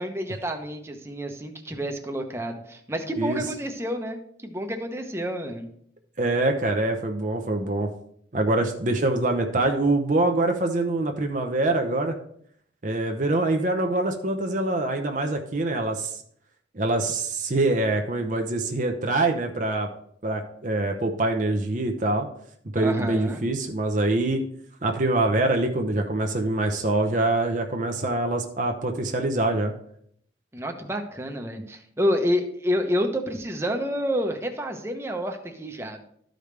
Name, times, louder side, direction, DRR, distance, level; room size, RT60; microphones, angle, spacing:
voice 1, 0.0-5.7 22.8-23.4 30.5-36.0, equal, 15° right, 4 dB, 0.8 m, -29 dB
voice 2, 6.2-7.9 8.3-12.2 12.8-16.2 16.7-19.9 20.2-22.3 22.7-24.4 24.8-29.7, right 2 dB, 45° right, 4 dB, 0.7 m, -24 dB
13.0 x 5.1 x 3.3 m, 0.67 s
head